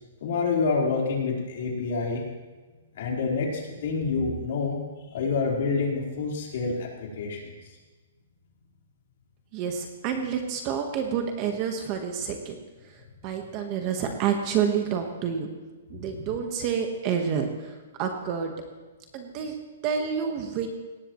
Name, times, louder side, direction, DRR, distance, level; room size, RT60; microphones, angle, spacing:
voice 1, 0.2-2.2 2.9-4.8 5.1-7.5 15.9-16.2, left 4 dB, 50° left, -2 dB, 4.1 m, -27 dB
voice 2, 9.5-12.6 13.2-15.5 15.9-17.7 18.0-18.5 19.1-19.6 19.8-20.7, right 7 dB, 25° right, 4 dB, 1.3 m, -28 dB
20.5 x 18.0 x 3.1 m, 1.3 s
hypercardioid pair, 175°, 0 cm